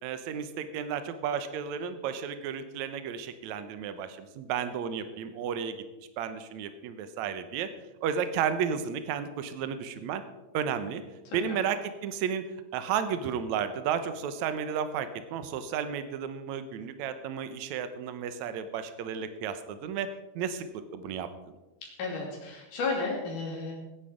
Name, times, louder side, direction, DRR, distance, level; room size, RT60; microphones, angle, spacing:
voice 1, 0.0-5.8 6.2-7.7 8.0-10.2 10.5-11.0 11.3-12.4 12.7-20.1 20.4-21.3, right 7 dB, 75° right, 10 dB, 2.2 m, -33 dB
voice 2, 11.3-11.6 22.0-23.7, left 3 dB, 80° left, -2 dB, 4.2 m, -33 dB
16.5 x 9.8 x 5.1 m, 1.1 s
omnidirectional pair, 3.6 m